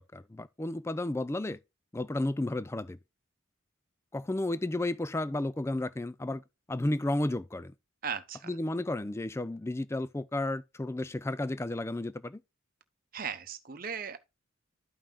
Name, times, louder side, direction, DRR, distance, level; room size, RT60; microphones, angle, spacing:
voice 1, 0.0-1.6 1.9-3.0 4.1-6.4 6.7-7.7 8.5-12.4, left 1 dB, 10° left, 0.3 m, -32 dB
voice 2, 8.0-8.6 13.1-14.2, right 7 dB, 45° right, 0.9 m, -37 dB
12.5 x 5.5 x 2.4 m
head